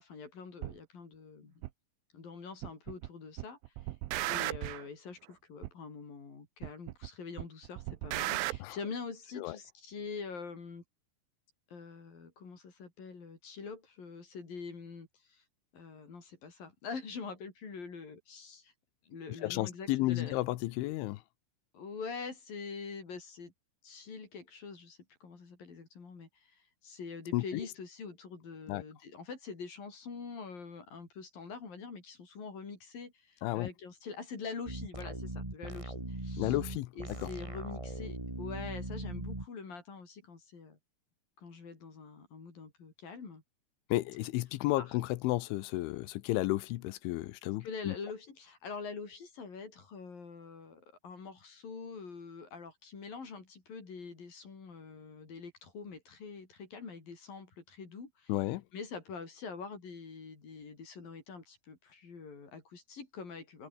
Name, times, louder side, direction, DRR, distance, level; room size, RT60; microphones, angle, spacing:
voice 1, 0.0-1.6 2.1-3.6 4.3-10.8 11.7-15.4 15.7-18.7 19.0-20.4 21.7-23.5 23.8-36.6 37.0-40.8 41.4-43.4 44.8-45.0 47.6-58.3 58.7-63.7, left 5 dB, 45° left, 6.9 m, -45 dB
sound 1, 0.6-0.8 1.6-1.7 2.6-3.1 3.4-4.9 5.6-5.7 6.6-7.1 7.4-8.6, right 18 dB, 85° right, 3.4 m, -35 dB
voice 2, 19.4-21.2 27.3-27.7 28.7-28.8 33.4-33.7 36.4-36.9 37.2-37.3 43.9-47.9 58.3-58.6, left 18 dB, 80° left, 3.2 m, -32 dB
sound 2, 34.6-39.4, right 2 dB, 55° right, 0.3 m, -40 dB
omnidirectional pair, 5.7 m